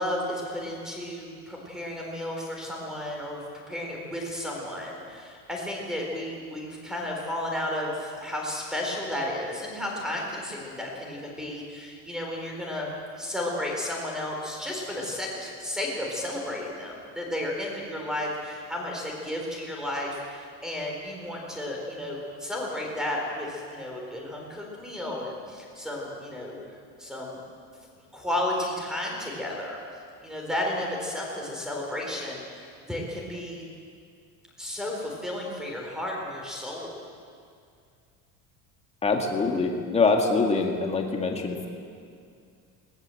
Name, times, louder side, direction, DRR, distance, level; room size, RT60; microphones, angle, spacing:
voice 1, 0.0-27.4 28.1-29.8 30.2-33.7 34.6-36.9, left 1 dB, ahead, -1 dB, 4.1 m, -33 dB
voice 2, 39.0-41.7, left 3 dB, 15° left, 2 dB, 2.1 m, -24 dB
20.5 x 19.5 x 7.8 m, 2.3 s
cardioid pair, 175°, 38 cm